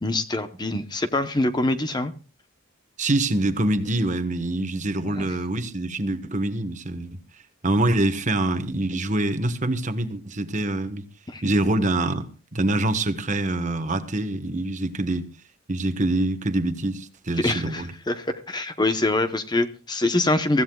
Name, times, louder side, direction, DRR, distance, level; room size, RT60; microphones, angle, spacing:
voice 1, 0.0-2.1 5.1-5.3 11.3-11.4 17.4-20.6, left 2 dB, 20° left, 0.8 m, -24 dB
voice 2, 3.0-7.1 7.6-11.0 11.4-15.3 15.7-17.9, right 1 dB, 35° right, 1.2 m, -25 dB
24.0 x 15.5 x 2.3 m
head